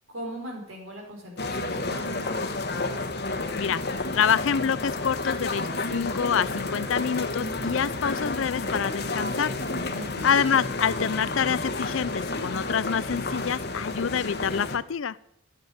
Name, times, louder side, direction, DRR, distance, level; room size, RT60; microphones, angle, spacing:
voice 1, 0.1-2.5 9.9-10.3, equal, 90° right, 0 dB, 5.1 m, -39 dB
sound 1, 1.4-14.8, left 2 dB, 50° left, 1.4 m, -30 dB
Thunder / Rain, 1.4-1.6 1.8-6.0 6.7-7.1 7.5-7.7 8.0-11.7, equal, 55° right, 5.1 m, -56 dB
voice 2, 4.1-9.5 9.8-9.9 10.2-15.2, left 7 dB, 70° left, 19 dB, 0.5 m, -27 dB
12.0 x 8.7 x 9.6 m, 0.80 s
head